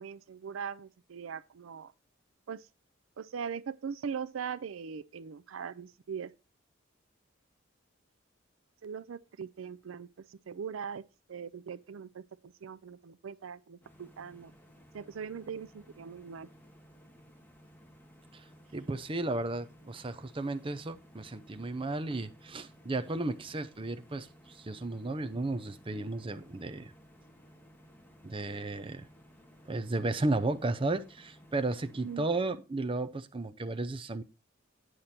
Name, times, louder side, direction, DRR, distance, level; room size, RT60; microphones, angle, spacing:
voice 1, 0.0-1.9 2.5-2.7 3.2-6.3 8.8-11.0 11.3-14.5 14.9-16.5 32.0-32.3, right 6 dB, 85° right, 0.4 m, -41 dB
sound 1, 13.8-32.2, equal, 10° left, 1.5 m, -58 dB
voice 2, 18.7-26.9 28.2-29.1 29.7-34.2, right 2 dB, 25° right, 0.6 m, -34 dB
9.0 x 6.5 x 4.2 m
head